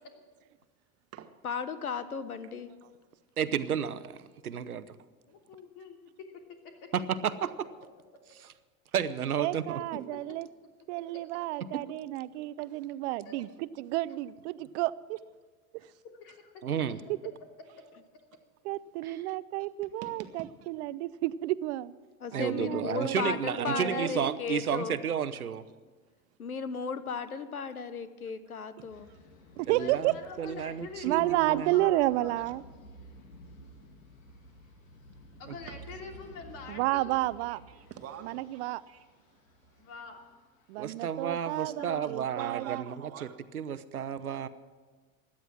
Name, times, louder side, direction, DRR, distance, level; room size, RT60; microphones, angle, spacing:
voice 1, 1.4-2.7 22.2-25.0 26.4-29.1, left 6 dB, 90° left, 13 dB, 1.0 m, -35 dB
voice 2, 2.4-3.2 5.3-5.4 12.7-12.8 13.4-13.5 14.6-14.7 15.8-16.0 20.0-20.7 26.0-26.4 28.8-28.9 29.5-29.6 33.1-33.3 33.6-33.7 34.2-34.6 35.7-35.8 37.5-39.9 42.0-43.4, right 9 dB, 35° right, 9 dB, 1.4 m, -50 dB
voice 3, 3.4-4.9 6.9-7.5 8.9-9.8 11.7-11.8 16.6-17.0 19.0-19.2 22.3-25.6 29.7-30.1 30.4-31.7 40.8-42.9 43.2-43.3 43.5-44.5, right 8 dB, 90° right, 14 dB, 0.8 m, -32 dB
voice 4, 5.3-6.0 6.8-6.9 11.5-11.6 13.2-13.4 16.2-16.6 17.7-17.8 22.8-22.9 29.7-32.5 35.4-37.1 39.8-40.2 41.3-42.3, left 5 dB, 50° left, 3 dB, 3.1 m, -46 dB
voice 5, 9.4-10.5 10.9-15.2 15.7-15.9 18.6-21.9 22.3-24.4 29.6-30.1 31.0-32.6 36.7-37.6 38.2-38.8 40.7-42.8, right 17 dB, 55° right, 18 dB, 0.7 m, -31 dB
sound 1, 28.9-41.2, right 1 dB, 65° left, 2.7 m, -53 dB
17.0 x 11.5 x 6.1 m, 1.4 s
hypercardioid pair, 85°, 42 cm